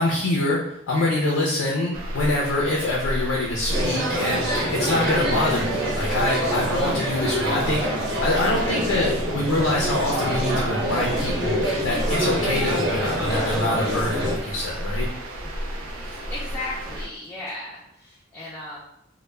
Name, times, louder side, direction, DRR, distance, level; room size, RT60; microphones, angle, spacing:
voice 1, 0.0-15.1, left 2 dB, 75° left, -1 dB, 0.4 m, -25 dB
sound 1, 1.9-17.1, equal, 90° right, 0.5 m, -32 dB
sound 2, 3.7-14.3, equal, 60° right, 0.8 m, -26 dB
voice 2, 16.0-18.8, left 2 dB, 10° left, -7 dB, 0.4 m, -36 dB
2.1 x 2.0 x 3.1 m, 0.79 s
head